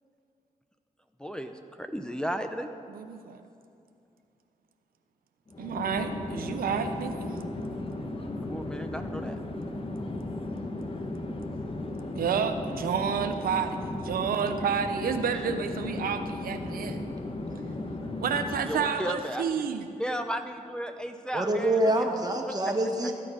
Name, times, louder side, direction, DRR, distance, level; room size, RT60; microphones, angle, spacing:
voice 1, 1.2-1.5 1.8-2.7 8.5-9.4 18.6-19.7 20.0-22.1, equal, 5° left, 6 dB, 0.6 m, -34 dB
voice 2, 2.9-3.4 5.6-7.3 12.2-13.8 14.0-17.0 18.2-19.9, right 7 dB, 85° right, 7 dB, 0.6 m, -30 dB
Chatter / Fixed-wing aircraft airplane, 5.5-18.9, left 2 dB, 40° left, 1.2 m, -35 dB
voice 3, 21.3-23.1, right 1 dB, 25° right, 2 dB, 1.6 m, -26 dB
14.0 x 8.5 x 5.0 m, 2.5 s
cardioid pair, 60°, 15 cm